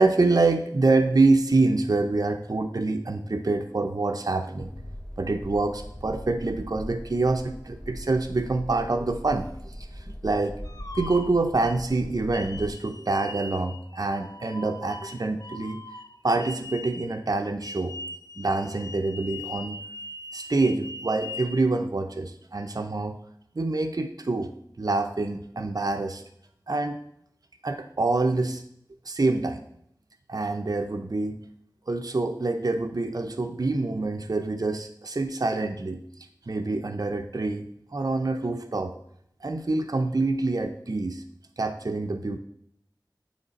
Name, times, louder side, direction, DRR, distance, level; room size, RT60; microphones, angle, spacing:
voice 1, 0.0-4.7 5.2-10.6 11.0-15.8 16.2-18.0 18.4-19.8 20.3-23.2 23.6-24.5 24.8-26.2 26.7-27.0 27.6-28.6 29.1-29.6 30.3-31.4 31.9-36.0 36.5-37.7 37.9-38.9 39.4-41.2 41.6-42.4, right 3 dB, 55° right, 5 dB, 0.5 m, -26 dB
sound 1, 4.6-12.7, equal, 10° left, 0.6 m, -40 dB
sound 2, 10.6-11.8 12.3-17.1 17.6-21.6, left 2 dB, 55° left, 0.6 m, -41 dB
9.3 x 3.2 x 4.0 m, 0.71 s
wide cardioid pair, 40°, 8 cm